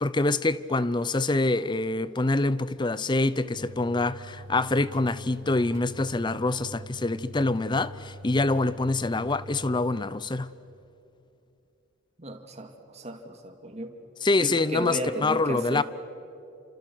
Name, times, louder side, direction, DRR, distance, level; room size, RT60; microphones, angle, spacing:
voice 1, 0.0-10.5 14.2-15.8, left 2 dB, 25° left, 0.6 m, -25 dB
sound 1, 3.5-10.0, equal, 90° right, 1.7 m, -44 dB
voice 2, 12.2-14.0 14.4-15.8, right 1 dB, 35° right, 2.2 m, -34 dB
29.5 x 26.5 x 6.2 m
head